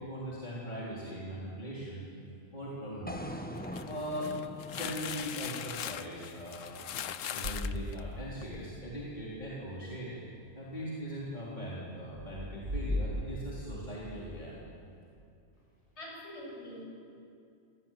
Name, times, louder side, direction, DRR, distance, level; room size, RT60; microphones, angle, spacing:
voice 1, 0.0-2.0 2.5-3.4 3.8-4.3 4.7-6.8 7.3-10.2 10.6-14.6, equal, 35° left, -7 dB, 3.9 m, -40 dB
sound 1, 3.1-7.2, equal, 5° left, 1.5 m, -44 dB
sound 2, 3.6-8.7, left 9 dB, 75° left, 1.1 m, -40 dB
sound 3, 7.4-8.4 8.7-8.8 12.0-14.1, left 1 dB, 75° right, 5.6 m, -36 dB
voice 2, 16.0-16.8, left 1 dB, 55° left, -2 dB, 7.7 m, -44 dB
28.0 x 18.5 x 9.2 m, 2.6 s
omnidirectional pair, 1.4 m